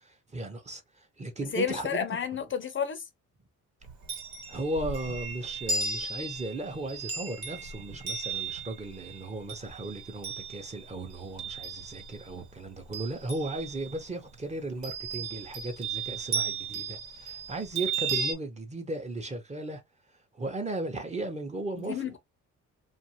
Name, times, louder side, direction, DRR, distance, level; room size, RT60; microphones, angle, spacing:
voice 1, 0.0-2.1 4.5-19.8 20.3-22.1, right 2 dB, 20° right, 0.8 m, -36 dB
voice 2, 1.5-3.0 21.8-22.2, left 7 dB, 40° left, 0.5 m, -31 dB
Chime, 3.8-12.3 12.7-14.0 14.8-18.3, right 5 dB, 70° right, 1.1 m, -35 dB
2.5 x 2.4 x 2.8 m
cardioid pair, 90°, 30 cm